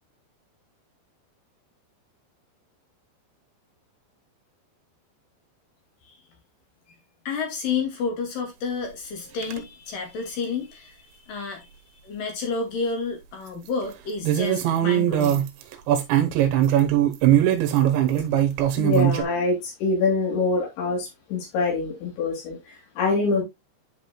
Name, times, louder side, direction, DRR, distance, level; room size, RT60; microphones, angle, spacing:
voice 1, 7.3-11.7 12.0-15.4, left 4 dB, 50° left, 3.5 m, -30 dB
sound 1, 9.4-9.6 14.2-19.2, right 11 dB, 75° right, 3.2 m, -20 dB
voice 2, 18.8-23.4, left 3 dB, 75° left, 5.5 m, -25 dB
11.0 x 5.0 x 2.3 m
omnidirectional pair, 5.3 m